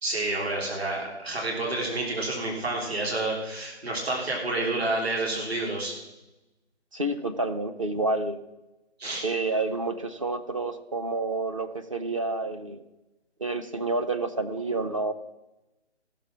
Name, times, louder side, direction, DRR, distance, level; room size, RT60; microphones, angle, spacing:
voice 1, 0.0-5.9 9.0-9.3, right 2 dB, 60° right, -1 dB, 3.6 m, -29 dB
voice 2, 6.9-8.4 9.2-12.8 13.4-15.1, right 2 dB, 30° right, 5 dB, 0.6 m, -29 dB
15.5 x 6.8 x 6.1 m, 1.0 s
figure-of-eight pair, 150°, 35 cm